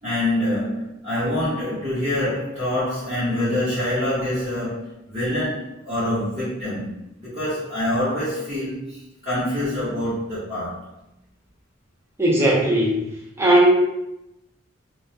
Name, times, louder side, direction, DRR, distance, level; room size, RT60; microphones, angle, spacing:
voice 1, 0.0-10.9, left 1 dB, 35° right, -11 dB, 0.8 m, -26 dB
voice 2, 12.2-13.1 13.4-13.7, right 1 dB, 15° right, -4 dB, 0.5 m, -17 dB
2.2 x 2.0 x 2.7 m, 0.88 s
head